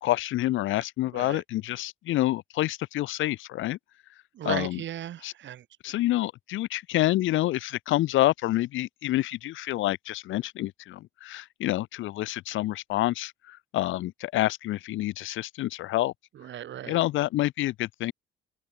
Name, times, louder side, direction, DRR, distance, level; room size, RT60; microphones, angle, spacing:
voice 1, 0.0-3.8 4.4-4.8 5.2-5.3 5.8-16.1 16.9-18.1, left 16 dB, 80° left, 0.7 m, -28 dB
voice 2, 4.3-5.7 16.3-17.0, right 11 dB, 65° right, 1.9 m, -36 dB
open air
cardioid pair, 90°, 20 cm